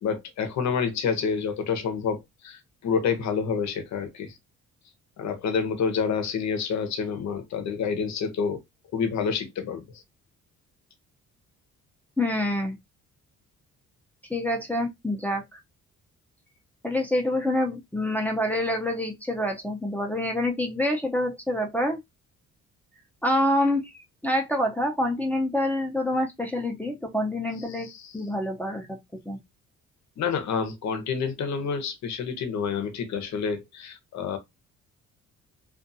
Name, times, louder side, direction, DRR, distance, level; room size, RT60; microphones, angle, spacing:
voice 1, 0.0-4.3 5.2-8.6 8.9-10.0 27.7-28.2 30.2-34.4, left 6 dB, 65° left, 0.8 m, -28 dB
voice 2, 12.2-12.8 14.3-15.4 16.8-22.0 23.2-27.9 28.1-29.0 29.3-29.4, left 1 dB, 5° left, 0.7 m, -26 dB
2.5 x 2.5 x 2.6 m
cardioid pair, 90°, 30 cm